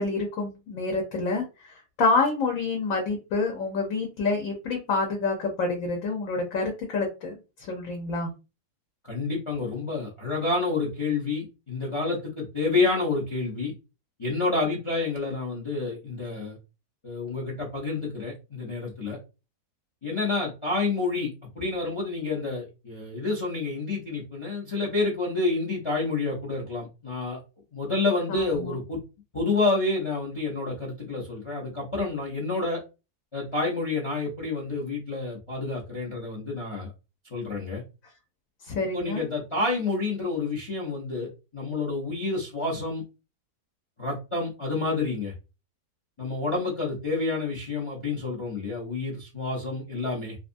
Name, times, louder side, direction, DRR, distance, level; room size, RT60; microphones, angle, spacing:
voice 1, 0.0-1.4 2.0-8.3 28.3-28.7 38.7-39.2, left 3 dB, 65° left, 1 dB, 1.1 m, -27 dB
voice 2, 9.0-13.7 14.2-16.6 17.0-19.2 20.0-21.3 21.6-27.4 27.7-29.0 29.3-32.8 33.3-36.9 37.3-37.8 38.9-43.0 44.0-45.3 46.2-50.4, left 3 dB, 35° left, -3 dB, 0.5 m, -29 dB
2.6 x 2.4 x 2.5 m, 0.29 s
omnidirectional pair, 1.6 m